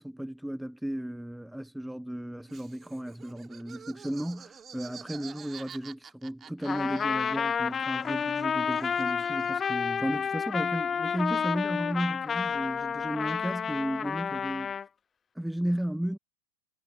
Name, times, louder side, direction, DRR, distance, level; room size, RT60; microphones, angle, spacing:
voice 1, 0.0-14.8 15.4-16.2, right 1 dB, ahead, 0.8 m, -34 dB
Laughter, 2.5-7.7 7.9-9.9, right 7 dB, 20° right, 2.7 m, -49 dB
Trumpet, 6.6-14.9, left 7 dB, 20° left, 0.9 m, -30 dB
figure-of-eight pair, 90°, 0 cm